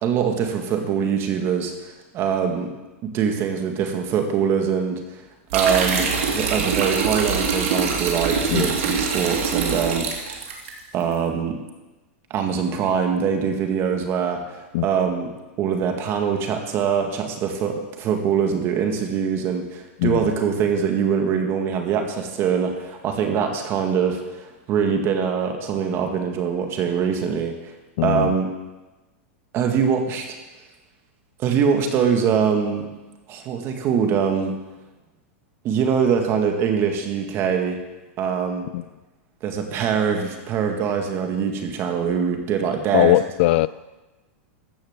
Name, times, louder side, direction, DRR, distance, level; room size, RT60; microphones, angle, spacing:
voice 1, 0.0-2.7 3.1-5.2 5.5-10.4 10.9-11.6 12.3-15.3 15.6-27.7 28.0-28.5 29.5-30.4 31.4-32.9 33.3-34.5 35.6-37.8 38.2-38.7 39.4-43.1, right 7 dB, 35° right, 4 dB, 1.9 m, -23 dB
sound 1, 5.5-10.7, right 5 dB, 75° right, 2.6 m, -24 dB
voice 2, 20.0-20.3 28.0-28.3 38.7-38.8 42.9-43.7, left 17 dB, 55° left, 19 dB, 0.3 m, -20 dB
14.5 x 5.7 x 7.3 m, 1.1 s
supercardioid pair, 140°, 7 cm